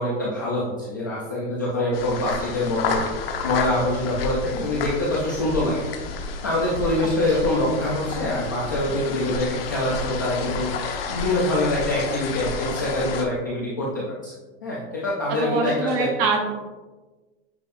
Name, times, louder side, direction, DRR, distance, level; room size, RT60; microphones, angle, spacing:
voice 1, 0.0-3.0 3.4-6.0 6.4-10.7 11.1-14.3 14.6-16.1, left 1 dB, 20° left, -6 dB, 0.3 m, -25 dB
sound 1, 1.9-13.2, left 4 dB, 55° left, 0.9 m, -30 dB
voice 2, 7.1-7.6 15.3-16.4, right 4 dB, 25° right, 2 dB, 0.8 m, -25 dB
9.0 x 5.4 x 2.5 m, 1.2 s
supercardioid pair, 180°, 35 cm